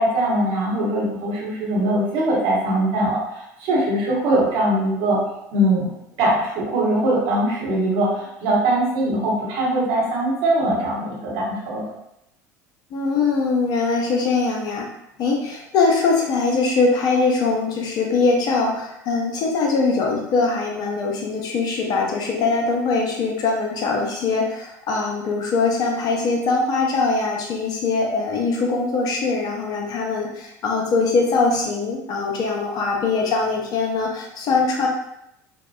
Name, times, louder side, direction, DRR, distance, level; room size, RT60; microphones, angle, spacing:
voice 1, 0.0-5.2 5.5-5.9 6.2-11.8, right 1 dB, 55° right, -5 dB, 1.0 m, -21 dB
voice 2, 12.9-14.9 15.2-34.9, left 4 dB, 40° left, 0 dB, 0.5 m, -22 dB
2.6 x 2.1 x 2.3 m, 0.81 s
figure-of-eight pair, 70°, 10 cm